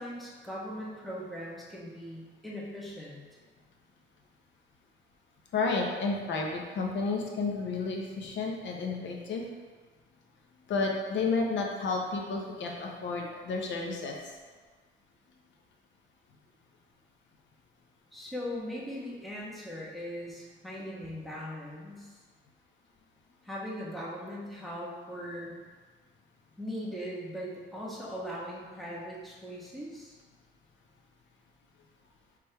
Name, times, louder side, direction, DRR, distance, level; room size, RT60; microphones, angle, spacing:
voice 1, 0.0-3.2 18.1-22.2 23.4-25.5 26.6-30.1, equal, ahead, -6 dB, 1.1 m, -39 dB
voice 2, 5.5-9.4 10.7-14.2, left 4 dB, 70° left, 0 dB, 0.8 m, -31 dB
3.5 x 3.4 x 4.4 m, 1.4 s
cardioid pair, 90°, 20 cm